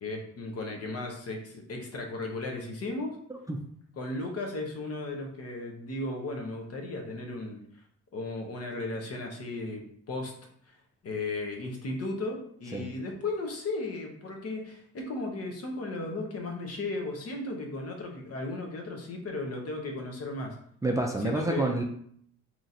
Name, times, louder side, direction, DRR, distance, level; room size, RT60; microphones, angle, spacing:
voice 1, 0.0-3.2 4.0-7.6 8.1-10.3 10.7-10.8 11.0-20.5 21.2-21.8, left 2 dB, 55° left, 2 dB, 1.0 m, -35 dB
voice 2, 20.8-21.8, right 2 dB, 10° right, 1 dB, 0.4 m, -28 dB
3.0 x 2.5 x 4.1 m, 0.64 s
cardioid pair, 90°, 30 cm